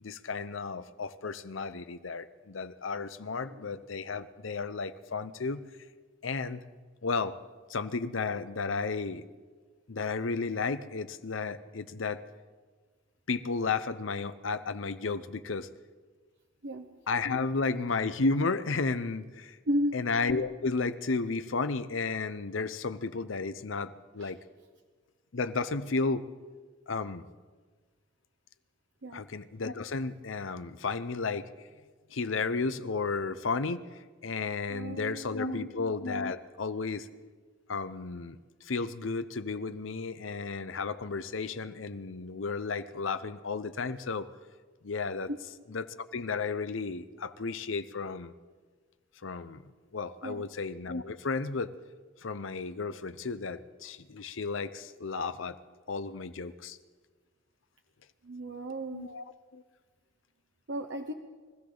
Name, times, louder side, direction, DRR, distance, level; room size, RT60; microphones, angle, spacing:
voice 1, 0.0-5.6 6.2-6.6 7.0-7.4 7.7-9.2 9.9-12.2 13.3-15.7 17.1-19.6 19.9-24.4 25.3-26.3 26.9-27.3 29.1-31.5 32.1-33.8 34.2-37.1 37.7-44.3 44.8-45.3 45.7-48.3 49.2-49.6 49.9-51.7 52.2-55.6 55.9-56.8 58.9-59.2 59.5-59.6, left 4 dB, 85° left, 13 dB, 0.7 m, -33 dB
voice 2, 19.7-20.0 24.2-24.3 29.0-29.2 34.7-35.7 45.3-45.4 50.2-50.4 58.2-59.1 60.7-61.1, equal, 65° right, 3 dB, 0.9 m, -34 dB
23.5 x 15.5 x 3.9 m, 1.4 s
head